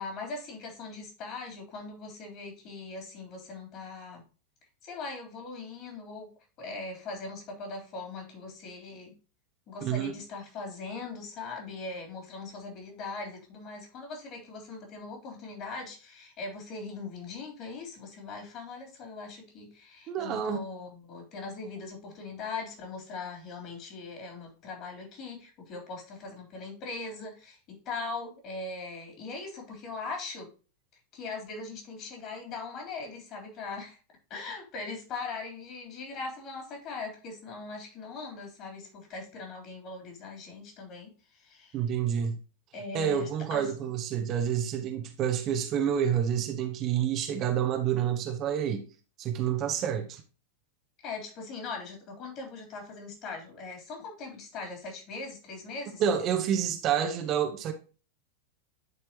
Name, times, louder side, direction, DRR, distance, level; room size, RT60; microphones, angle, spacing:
voice 1, 0.0-4.2 4.8-6.3 6.6-9.2 9.7-30.5 31.1-34.0 34.3-41.8 42.7-43.7 51.0-56.0, left 3 dB, 35° left, 3.4 m, -40 dB
voice 2, 9.8-10.1 20.1-20.6 41.7-42.4 42.9-48.9 49.2-50.2 56.0-57.7, right 9 dB, 35° right, 0.9 m, -28 dB
11.0 x 4.6 x 2.9 m
figure-of-eight pair, 90°, 0 cm